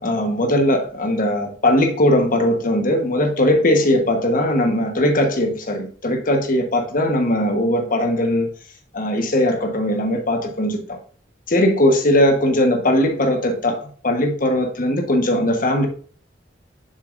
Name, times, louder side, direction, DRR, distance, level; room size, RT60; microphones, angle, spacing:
voice 1, 0.0-8.5 8.9-11.0 11.5-15.9, left 1 dB, 50° left, 1.2 m, -19 dB
6.8 x 6.7 x 2.5 m
head